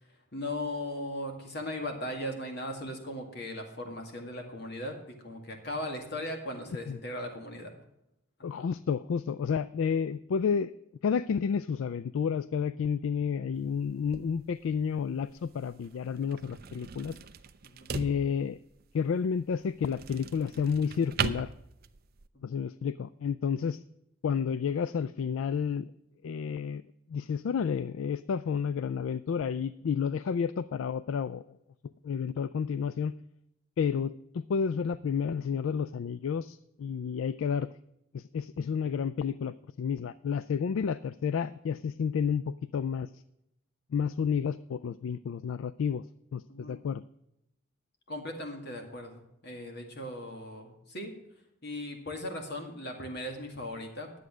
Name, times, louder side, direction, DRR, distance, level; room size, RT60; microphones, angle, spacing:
voice 1, 0.3-7.7 8.4-8.6 17.6-17.9 22.3-22.6 46.5-46.8 48.1-51.1 51.6-54.2, left 1 dB, 50° left, 3 dB, 2.1 m, -38 dB
voice 2, 8.4-10.7 11.0-17.2 17.9-18.6 18.9-21.5 22.4-23.8 24.2-25.9 26.2-26.8 27.1-31.4 32.0-33.1 33.8-37.7 38.1-43.1 43.9-46.0 46.3-47.0, left 6 dB, 70° left, 16 dB, 0.3 m, -31 dB
sound 1, 13.5-22.3, right 6 dB, 45° right, 0.5 m, -40 dB
10.5 x 8.0 x 6.1 m, 0.84 s
head